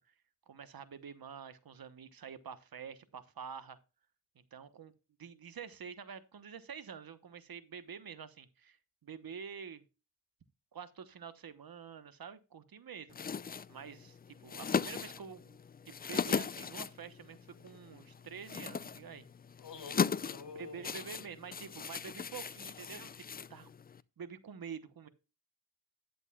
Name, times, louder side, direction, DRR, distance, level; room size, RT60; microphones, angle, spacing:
voice 1, 0.5-3.8 4.3-4.9 5.2-9.8 10.7-13.2 13.7-15.6 15.9-19.2 20.5-23.7 24.2-25.1, right 7 dB, 50° right, 13 dB, 1.1 m, -48 dB
sound 1, 13.1-24.0, left 6 dB, 25° left, 0.3 m, -38 dB
voice 2, 19.6-20.9, left 5 dB, 70° left, 6 dB, 2.4 m, -48 dB
11.0 x 8.0 x 2.3 m, 0.30 s
cardioid pair, 70°, 45 cm